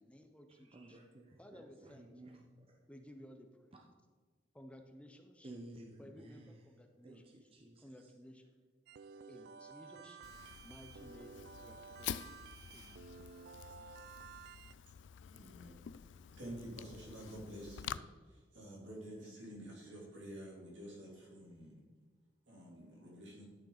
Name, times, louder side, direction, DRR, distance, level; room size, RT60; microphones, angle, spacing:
voice 1, 0.0-1.0 1.4-2.1 2.9-3.7 4.5-5.6 6.0-7.5 7.8-8.5 9.3-10.2 10.6-12.2 12.7-13.1 19.2-19.4, equal, 5° left, 5 dB, 0.6 m, -56 dB
voice 2, 0.7-2.8 5.4-6.5 7.0-7.8, right 1 dB, 30° right, 1 dB, 0.7 m, -54 dB
sound 1, 8.9-14.7, right 6 dB, 60° right, 0.3 m, -54 dB
Fire, 10.2-18.0, left 9 dB, 75° left, 0.3 m, -48 dB
voice 3, 15.3-15.8 16.4-18.0 18.3-21.8 22.5-23.5, equal, 80° right, -3 dB, 3.1 m, -49 dB
11.5 x 6.7 x 3.9 m, 1.4 s
head